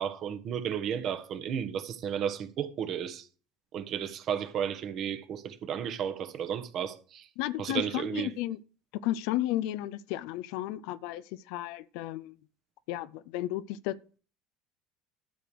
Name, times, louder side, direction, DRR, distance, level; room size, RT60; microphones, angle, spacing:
voice 1, 0.0-3.3 3.7-7.3 7.6-8.3, right 8 dB, 45° right, 1.3 m, -33 dB
voice 2, 7.4-8.6 9.0-12.4 12.9-14.0, left 14 dB, 60° left, 0.5 m, -33 dB
12.0 x 6.7 x 4.7 m
figure-of-eight pair, 65°, 0 cm